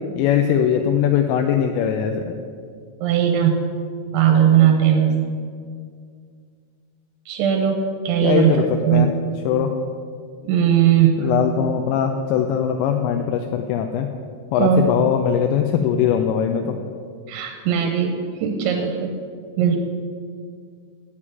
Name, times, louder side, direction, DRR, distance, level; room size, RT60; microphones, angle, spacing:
voice 1, 0.2-2.4 8.2-8.7 8.9-9.1 9.5-9.7 11.2-14.1 14.5-16.7, left 9 dB, 80° left, 4 dB, 2.7 m, -20 dB
voice 2, 3.0-3.6 4.1-5.1 7.3-7.8 8.0-8.6 8.8-9.1 10.4-11.3 14.6-15.1 17.3-19.1 19.6-19.8, right 9 dB, 80° right, 2 dB, 3.2 m, -18 dB
9.8 x 7.8 x 9.0 m, 2.2 s
omnidirectional pair, 5.5 m